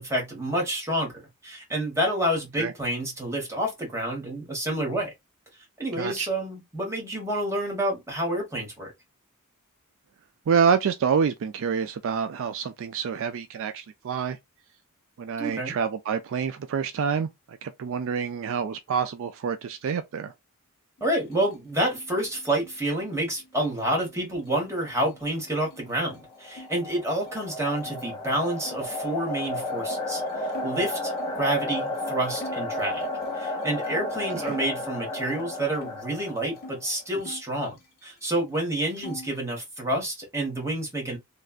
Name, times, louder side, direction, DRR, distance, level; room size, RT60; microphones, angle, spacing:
voice 1, 0.0-5.1 5.8-8.9 15.4-15.8 21.0-33.1 33.3-41.2, right 1 dB, 15° right, 1.4 m, -29 dB
voice 2, 6.0-6.3 10.5-14.4 15.2-20.3 34.4-34.5, right 6 dB, 60° right, 0.3 m, -27 dB
sound 1, 21.0-26.7 27.0-28.0 28.6-31.5 31.9-32.1 32.3-34.8 35.2-36.8 37.2-38.3 38.5-39.4, left 1 dB, 45° left, 0.9 m, -47 dB
sound 2, 26.1-36.9, left 2 dB, 20° left, 0.9 m, -33 dB
3.2 x 2.4 x 2.4 m
head